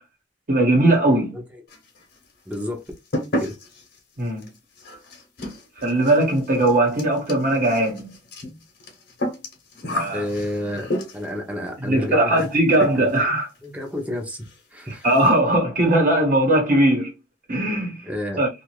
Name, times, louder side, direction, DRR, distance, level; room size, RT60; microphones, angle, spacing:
voice 1, 0.5-1.3 4.2-4.5 5.8-8.1 9.9-10.2 11.8-13.5 14.9-17.1 17.5-18.1 18.4-18.5, right 1 dB, 45° right, 1.2 m, -19 dB
sound 1, 1.7-2.2 2.5-11.4 12.4-12.5 12.8-13.3 13.6-13.7 14.0-14.1 14.4-14.6 14.9-15.4, left 1 dB, 55° left, 1.0 m, -32 dB
voice 2, 2.5-2.8 3.3-3.5 10.1-10.9 11.1-12.5 12.9-13.1 13.6-15.0 18.0-18.4, left 1 dB, 10° right, 0.8 m, -30 dB
2.7 x 2.5 x 3.1 m
head